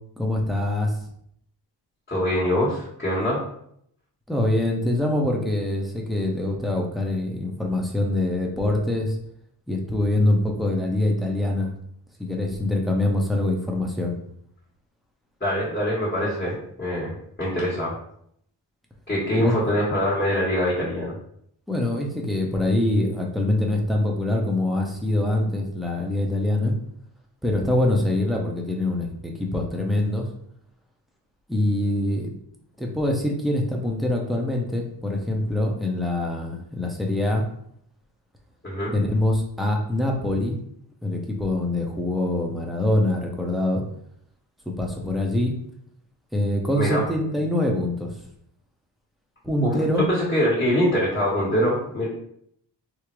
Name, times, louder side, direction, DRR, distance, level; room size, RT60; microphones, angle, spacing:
voice 1, 0.2-0.9 4.3-9.2 9.7-11.7 12.2-14.2 19.4-19.7 21.7-26.7 27.4-30.3 31.5-32.3 32.8-37.4 38.9-40.6 41.0-43.8 44.7-45.5 46.3-48.1 49.4-50.0, left 1 dB, ahead, 0 dB, 0.7 m, -24 dB
voice 2, 2.1-3.4 15.4-18.0 19.1-21.1 38.6-38.9 46.8-47.0 49.6-52.1, equal, 25° left, -7 dB, 1.2 m, -24 dB
3.6 x 2.1 x 3.0 m, 0.70 s
cardioid pair, 80°, 43 cm